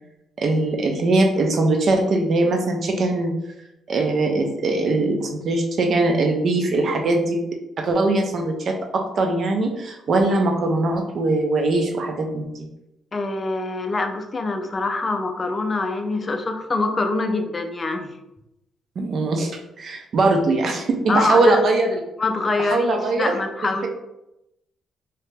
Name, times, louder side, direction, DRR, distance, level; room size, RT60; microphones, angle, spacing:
voice 1, 0.4-3.3 3.9-7.4 7.8-12.7 19.0-19.5 19.8-22.0 22.6-23.4, right 2 dB, 55° right, 3 dB, 0.5 m, -21 dB
voice 2, 13.1-18.1 21.1-21.6 22.2-23.9, left 3 dB, 30° left, 5 dB, 0.4 m, -24 dB
2.8 x 2.1 x 3.3 m, 0.88 s
cardioid pair, 90°, 0 cm